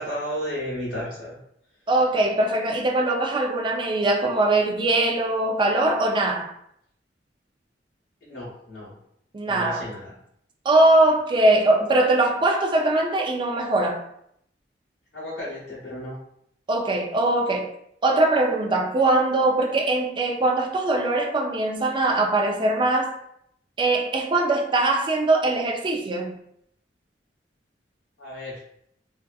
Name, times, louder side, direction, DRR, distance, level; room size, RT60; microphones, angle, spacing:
voice 1, 0.0-1.4 8.2-8.9 9.5-10.1 15.1-16.2 28.2-28.6, equal, 75° left, -9 dB, 0.8 m, -33 dB
voice 2, 1.9-6.5 9.3-9.9 10.6-14.0 16.7-17.7 18.0-23.1 23.8-26.4, right 2 dB, 25° right, 2 dB, 0.3 m, -21 dB
2.6 x 2.3 x 2.2 m, 0.72 s
head